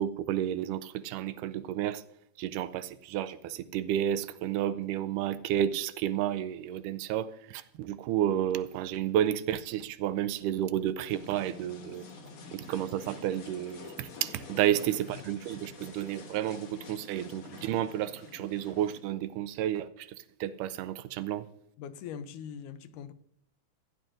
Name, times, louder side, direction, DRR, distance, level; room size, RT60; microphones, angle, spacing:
voice 1, 0.0-2.0 2.4-12.0 12.5-21.5, right 11 dB, 85° right, 2.1 m, -31 dB
sound 1, 11.1-19.0, left 4 dB, 60° left, 2.3 m, -48 dB
voice 2, 14.7-15.2 21.8-23.1, left 8 dB, 80° left, 2.0 m, -42 dB
15.5 x 10.5 x 2.5 m
omnidirectional pair, 3.7 m